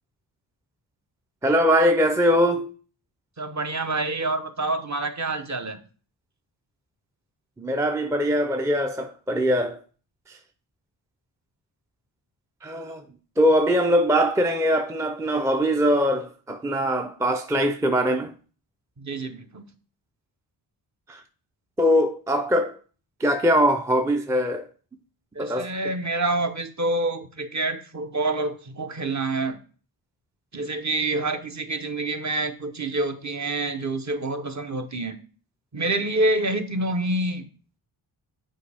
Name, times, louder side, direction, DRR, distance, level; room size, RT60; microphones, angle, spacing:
voice 1, 1.4-2.7 7.6-9.8 10.3-10.4 12.6-13.0 13.4-18.3 21.1-21.2 21.8-22.8 23.2-24.6 25.4-25.7, equal, 5° right, 0.4 m, -22 dB
voice 2, 3.4-5.8 19.0-19.6 25.3-29.6 30.5-35.2 35.7-37.5, right 2 dB, 35° right, 0.8 m, -27 dB
7.5 x 4.7 x 3.4 m
cardioid pair, 80°, 49 cm